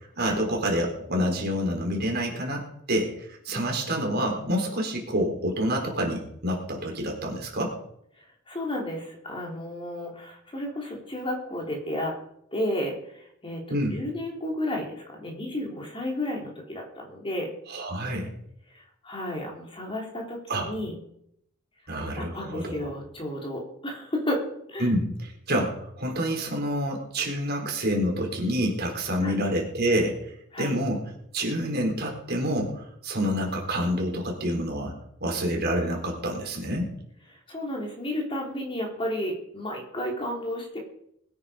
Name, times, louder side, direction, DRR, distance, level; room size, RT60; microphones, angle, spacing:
voice 1, 0.2-7.7 13.7-14.0 17.7-18.3 20.5-20.7 21.9-22.9 24.8-31.0 31.3-34.9 35.2-36.9, equal, 50° right, 1 dB, 4.2 m, -28 dB
voice 2, 8.5-12.1 12.5-17.5 19.0-21.0 22.2-24.4 24.7-24.9 29.2-29.4 30.5-30.8 37.5-40.8, left 1 dB, 25° left, 0 dB, 3.4 m, -32 dB
21.5 x 9.5 x 5.1 m, 0.73 s
head